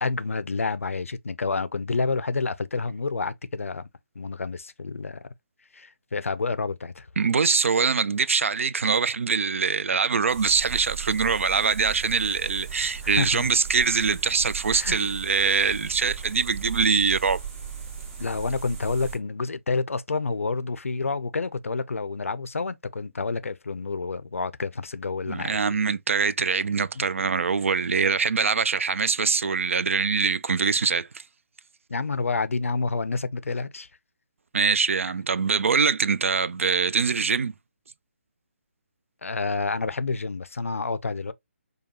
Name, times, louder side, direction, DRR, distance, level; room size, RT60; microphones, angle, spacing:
voice 1, 0.0-3.9 4.2-5.3 5.7-7.1 13.0-13.5 14.7-15.0 18.2-25.6 27.0-27.1 31.9-33.9 39.2-41.3, left 4 dB, 85° left, 0.4 m, -29 dB
voice 2, 7.2-17.4 25.3-31.1 34.5-37.5, right 5 dB, 75° right, 0.3 m, -23 dB
sound 1, 10.3-19.2, right 7 dB, 25° right, 1.6 m, -37 dB
5.2 x 2.3 x 2.8 m
figure-of-eight pair, 145°, 7 cm